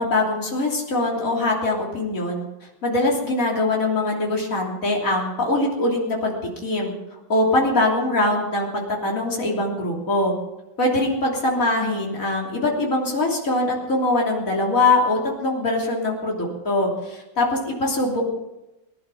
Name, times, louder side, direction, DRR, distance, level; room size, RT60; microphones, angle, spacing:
voice 1, 0.0-2.4 2.8-6.9 7.3-10.3 10.8-18.3, left 2 dB, 50° left, -2 dB, 3.6 m, -22 dB
20.5 x 11.0 x 5.6 m, 0.97 s
omnidirectional pair, 1.9 m